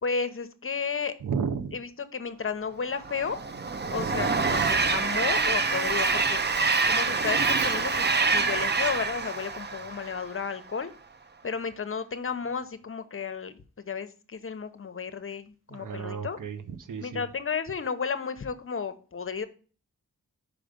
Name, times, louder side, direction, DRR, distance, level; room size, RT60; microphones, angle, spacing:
voice 1, 0.0-1.1 1.7-3.4 3.9-10.9 11.4-13.6 13.9-16.4 17.0-19.5, left 5 dB, 40° left, 0.8 m, -33 dB
voice 2, 1.2-1.8 15.7-17.2, right 6 dB, 75° right, 0.8 m, -33 dB
Train, 3.0-10.5, right 4 dB, 35° right, 0.6 m, -26 dB
5.0 x 5.0 x 5.1 m
cardioid pair, 70°, 32 cm